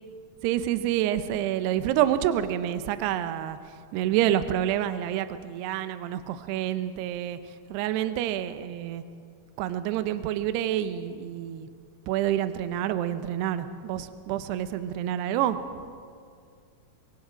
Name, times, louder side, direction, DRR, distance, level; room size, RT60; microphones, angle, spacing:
voice 1, 0.4-3.6 3.9-9.0 9.6-11.7 12.1-15.6, right 11 dB, 80° right, 11 dB, 2.7 m, -28 dB
24.0 x 24.0 x 5.0 m, 2.2 s
omnidirectional pair, 5.1 m